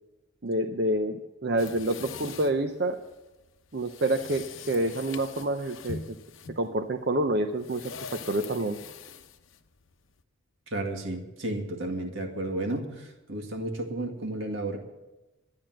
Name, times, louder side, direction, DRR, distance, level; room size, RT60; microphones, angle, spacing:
voice 1, 0.4-3.0 3.7-6.0 6.6-8.8, right 1 dB, 50° right, 6 dB, 0.7 m, -28 dB
sound 1, 1.6-10.2, left 5 dB, 75° left, 0.8 m, -43 dB
voice 2, 10.7-14.8, right 1 dB, 75° right, 3 dB, 2.1 m, -32 dB
12.5 x 10.5 x 7.6 m, 1.1 s
head